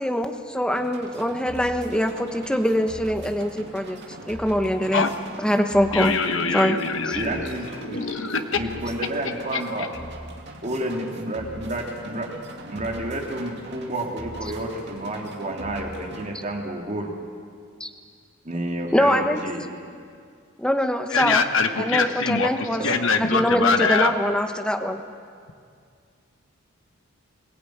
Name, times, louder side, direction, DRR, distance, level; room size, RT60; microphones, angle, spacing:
voice 1, 0.0-5.1 5.4-6.2 6.5-6.8 7.1-7.2 17.8-17.9 18.9-19.4 20.6-21.4 21.8-22.9 23.2-25.0, equal, 5° left, 5 dB, 1.0 m, -23 dB
sound 1, 0.8-16.3, right 1 dB, 55° right, 2.3 m, -40 dB
voice 2, 5.9-8.6 9.5-9.9 21.1-24.4, left 4 dB, 65° left, 7 dB, 1.3 m, -24 dB
voice 3, 7.1-8.1 8.5-9.9 10.6-12.3 12.7-17.2 18.4-19.6 22.8-23.0, right 1 dB, 35° right, 0 dB, 2.8 m, -30 dB
22.0 x 17.0 x 9.3 m, 2.2 s
head